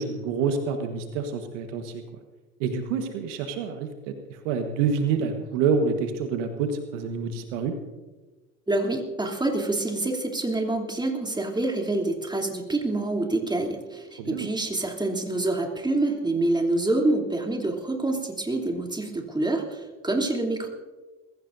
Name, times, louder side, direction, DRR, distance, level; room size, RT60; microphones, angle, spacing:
voice 1, 0.0-2.0 2.6-7.8 14.2-14.5, right 5 dB, 70° right, 6 dB, 1.5 m, -27 dB
voice 2, 8.7-20.7, right 2 dB, 10° right, 1 dB, 3.1 m, -26 dB
22.0 x 15.5 x 2.7 m, 1.2 s
hypercardioid pair, 70°, 38 cm